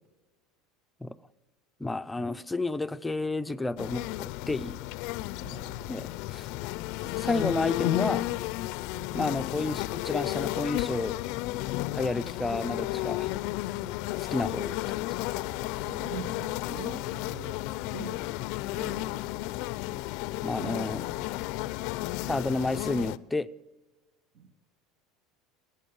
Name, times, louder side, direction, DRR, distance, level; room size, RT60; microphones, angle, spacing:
voice 1, 1.8-4.8 5.9-6.5 7.0-8.4 9.1-11.2 11.9-13.3 14.2-15.2 20.4-21.3 22.3-23.5, left 2 dB, 10° left, 0.6 m, -31 dB
sound 1, 3.8-23.2, left 18 dB, 65° left, 0.5 m, -33 dB
voice 2, 5.4-6.0 8.9-9.2 15.8-17.6 17.9-18.2 18.7-19.4 20.6-20.8 24.3-24.5, right 5 dB, 55° right, 1.8 m, -43 dB
17.5 x 8.6 x 7.1 m
supercardioid pair, 100°, 0 cm